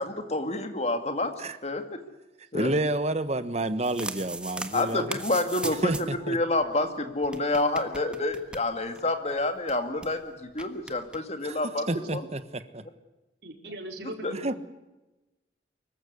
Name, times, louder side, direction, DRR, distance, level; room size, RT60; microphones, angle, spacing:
voice 1, 0.0-1.3 1.6-2.0 2.5-2.7 4.7-11.8 12.1-12.2 14.0-14.3, left 2 dB, 40° left, 7 dB, 2.3 m, -28 dB
voice 2, 2.5-5.2 5.8-6.4 11.4-11.6 11.9-12.8 14.3-14.5, right 1 dB, 40° right, 12 dB, 1.3 m, -29 dB
sound 1, 3.6-6.2 6.5-6.6 6.8-6.9 7.2-9.1 9.4-9.5 9.7-10.1 10.6-11.2, right 2 dB, 5° right, 1.4 m, -38 dB
voice 3, 13.4-14.6, right 1 dB, 70° right, 3 dB, 4.6 m, -40 dB
24.5 x 15.0 x 9.7 m, 1.0 s
head